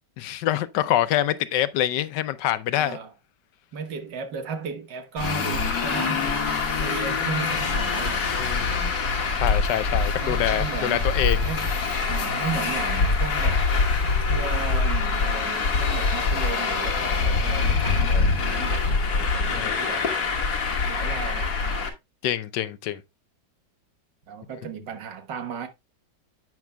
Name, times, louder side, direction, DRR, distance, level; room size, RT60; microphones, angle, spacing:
voice 1, 0.2-3.0 8.3-9.0 9.3-11.5 19.5-19.8 22.2-23.0, left 12 dB, 80° left, 1.3 m, -26 dB
voice 2, 2.7-3.1 3.7-8.4 10.2-11.1 11.4-11.7 12.1-13.7 14.3-20.1 20.8-21.9 24.3-25.7, right 6 dB, 80° right, 1.9 m, -35 dB
Traffic noise roadway noise, 5.2-21.9, left 4 dB, 60° left, 1.8 m, -24 dB
sound 1, 7.5-10.5 10.9-14.0, equal, 50° right, 5.3 m, -41 dB
10.5 x 8.2 x 2.2 m
omnidirectional pair, 1.9 m